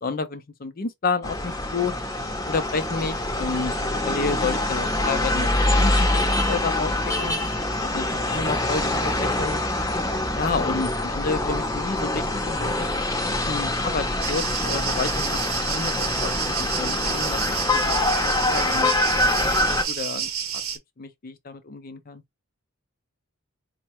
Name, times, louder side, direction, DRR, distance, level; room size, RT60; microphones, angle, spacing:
voice 1, 0.0-1.9 2.5-3.8 4.0-6.2 6.5-7.3 7.8-9.6 10.3-12.9 13.2-17.4 17.7-17.9 18.2-19.3 19.7-20.6 21.0-22.2, left 4 dB, 40° left, 0.5 m, -30 dB
sound 1, 1.2-19.8, left 2 dB, 15° left, 0.8 m, -25 dB
sound 2, 14.2-20.8, right 8 dB, 75° right, 0.7 m, -30 dB
4.4 x 2.1 x 2.9 m
head